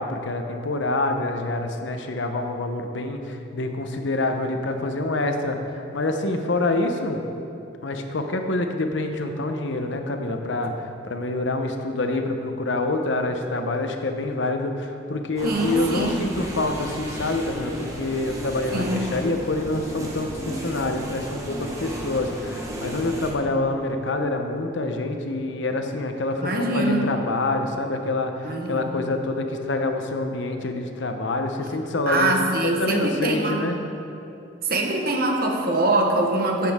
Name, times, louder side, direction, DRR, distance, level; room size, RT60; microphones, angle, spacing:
voice 1, 0.0-7.2 7.8-32.3 32.6-33.8, left 2 dB, 75° left, 5 dB, 0.8 m, -26 dB
sound 1, 15.4-23.3, equal, 15° right, 1.0 m, -34 dB
voice 2, 15.4-16.2 18.7-19.0 26.4-27.1 28.4-28.9 32.1-33.7 34.6-36.7, right 2 dB, 50° right, 1 dB, 1.1 m, -23 dB
13.5 x 7.5 x 3.6 m, 2.8 s
head